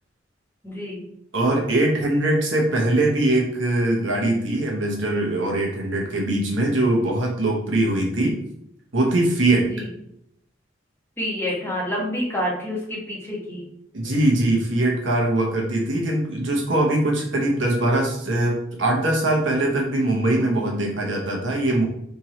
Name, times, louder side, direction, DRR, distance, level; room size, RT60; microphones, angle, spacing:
voice 1, 0.6-1.1 9.7-9.9 11.2-13.7, equal, 10° left, -3 dB, 1.1 m, -28 dB
voice 2, 1.3-8.4 8.9-9.7 13.9-21.8, right 1 dB, 80° right, -1 dB, 1.2 m, -22 dB
3.5 x 2.9 x 4.3 m, 0.74 s
head